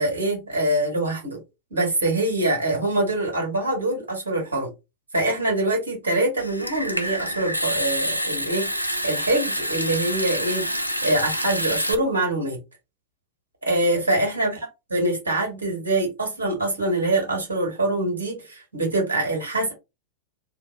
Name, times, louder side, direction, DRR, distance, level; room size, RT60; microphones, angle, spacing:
voice 1, 0.0-1.4 1.7-4.7 5.1-8.7 9.0-10.8 11.0-12.6 13.6-14.5 14.9-19.7, right 2 dB, 70° right, 2.0 m, -24 dB
Water tap faucet / Sink (filling or washing) / Trickle dribble, 6.4-11.9, equal, 90° right, 0.4 m, -27 dB
3.1 x 2.6 x 3.6 m
figure-of-eight pair, 90°, 0 cm